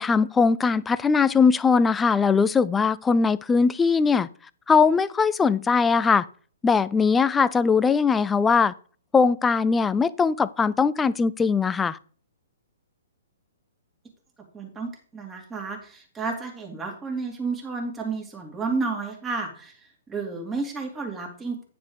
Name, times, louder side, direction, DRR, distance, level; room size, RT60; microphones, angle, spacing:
voice 1, 0.0-4.3 4.7-6.3 6.6-8.7 9.1-12.0, left 5 dB, 10° left, 17 dB, 0.4 m, -20 dB
voice 2, 14.5-19.8 20.1-21.6, right 4 dB, 15° right, 1 dB, 2.7 m, -31 dB
9.8 x 5.2 x 5.1 m, 0.42 s
hypercardioid pair, 125°, 0 cm